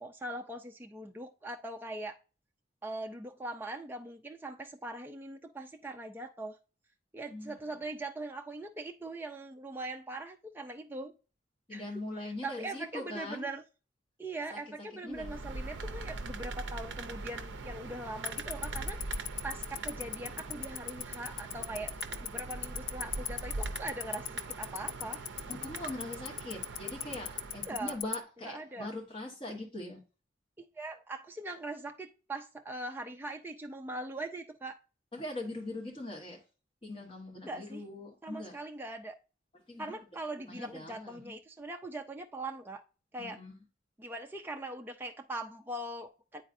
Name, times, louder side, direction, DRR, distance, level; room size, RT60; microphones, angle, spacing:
voice 1, 0.0-2.2 2.8-6.6 7.1-11.1 11.7-11.8 12.2-13.6 14.2-21.9 22.2-25.2 27.6-28.0 28.4-28.9 30.8-34.8 37.5-37.9 38.2-39.2 39.8-42.8 43.1-43.4 44.0-46.4, right 2 dB, 10° right, 0.3 m, -41 dB
voice 2, 11.7-13.5 14.5-14.6 15.0-15.3 25.5-30.0 35.1-36.4 36.8-38.6 39.7-40.0 40.5-41.4 43.2-43.5, left 1 dB, 25° left, 1.2 m, -41 dB
sound 1, 15.1-28.1, right 3 dB, 65° right, 0.5 m, -42 dB
Tick-tock, 18.3-28.1, left 12 dB, 70° left, 0.4 m, -34 dB
9.1 x 4.0 x 2.6 m
head